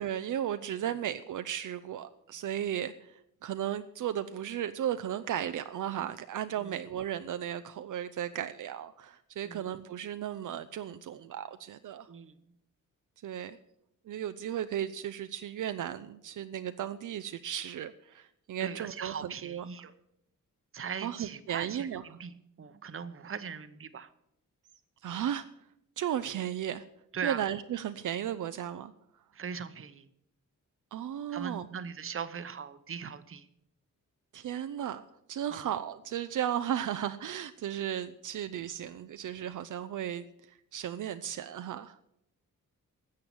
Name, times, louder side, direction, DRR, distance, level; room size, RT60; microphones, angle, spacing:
voice 1, 0.0-12.1 13.2-13.6 14.1-19.6 21.0-22.0 25.0-25.5 26.0-26.8 27.2-28.9 30.9-31.7 34.3-35.0 35.3-42.0, right 10 dB, 70° right, 10 dB, 0.6 m, -35 dB
voice 2, 12.1-12.4 18.6-19.9 20.7-24.1 27.1-27.4 29.3-30.1 31.3-33.5 35.5-35.7, right 6 dB, 40° right, 12 dB, 0.8 m, -40 dB
13.0 x 7.6 x 7.1 m, 0.80 s
wide cardioid pair, 130°, 32 cm